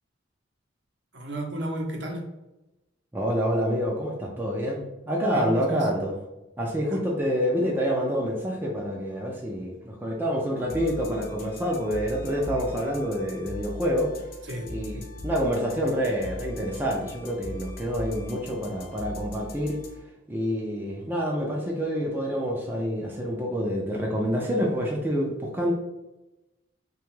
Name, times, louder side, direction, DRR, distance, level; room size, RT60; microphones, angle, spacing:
voice 1, 1.1-2.2 5.3-5.9 6.9-7.0 14.4-15.1, right 1 dB, 65° right, 1 dB, 0.6 m, -33 dB
voice 2, 3.1-6.1 6.6-14.1 14.7-19.8 20.3-25.7, equal, 10° right, -1 dB, 0.3 m, -27 dB
sound 1, 10.6-20.0, left 1 dB, 50° left, 0.5 m, -40 dB
2.9 x 2.2 x 3.0 m, 0.98 s
head